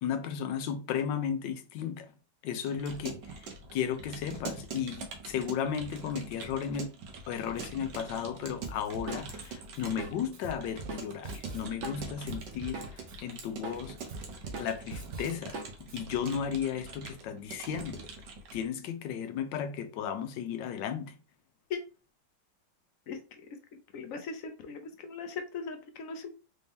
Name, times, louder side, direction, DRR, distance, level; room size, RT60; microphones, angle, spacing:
voice 1, 0.0-2.1 2.4-3.2 3.7-6.9 7.3-14.0 14.6-15.6 15.9-18.0 18.5-21.1, left 8 dB, 85° left, 1.3 m, -34 dB
Keyboard (musical) / Computer keyboard, 2.6-18.7, right 4 dB, 75° right, 1.5 m, -44 dB
Drum kit, 8.6-13.1 13.4-16.0, right 3 dB, 50° right, 0.9 m, -41 dB
voice 2, 23.9-26.3, left 5 dB, 65° left, 0.9 m, -39 dB
4.1 x 2.7 x 3.5 m
omnidirectional pair, 1.9 m